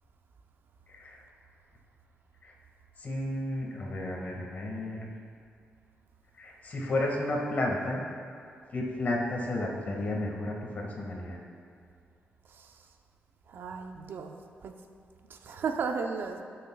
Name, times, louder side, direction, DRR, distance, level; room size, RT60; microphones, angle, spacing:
voice 1, 0.9-1.2 2.4-2.5 3.0-5.1 6.4-8.0 8.7-11.4, left 1 dB, 45° left, -1 dB, 1.8 m, -32 dB
voice 2, 13.5-14.8 15.3-16.4, right 5 dB, 65° right, 5 dB, 0.7 m, -35 dB
18.5 x 6.7 x 2.3 m, 2.4 s
cardioid pair, 125°, 4 cm